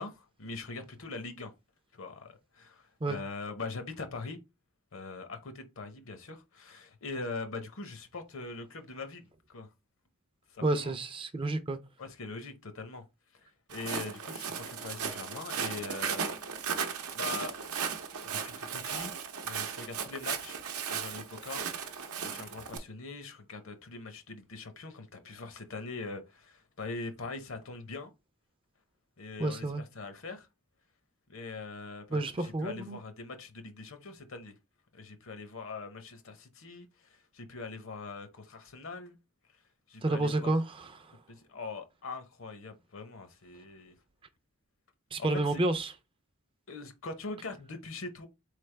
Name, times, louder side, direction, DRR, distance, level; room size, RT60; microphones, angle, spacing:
voice 1, 0.0-1.5 1.9-4.4 4.9-9.2 9.5-9.7 10.5-10.9 12.0-13.0 13.7-16.3 17.1-17.5 18.3-19.1 19.4-20.6 20.9-21.6 22.2-28.1 29.2-30.5 31.3-34.5 34.9-39.2 39.9-40.5 41.3-43.9 45.2-45.6 46.7-48.3, left 3 dB, 60° left, 0.8 m, -42 dB
voice 2, 10.6-11.8 29.4-29.8 32.1-33.0 40.0-41.1 45.1-45.9, right 2 dB, 25° right, 0.4 m, -30 dB
Walk footsteps, 13.7-22.8, right 7 dB, 85° right, 0.7 m, -36 dB
4.1 x 3.3 x 3.2 m
head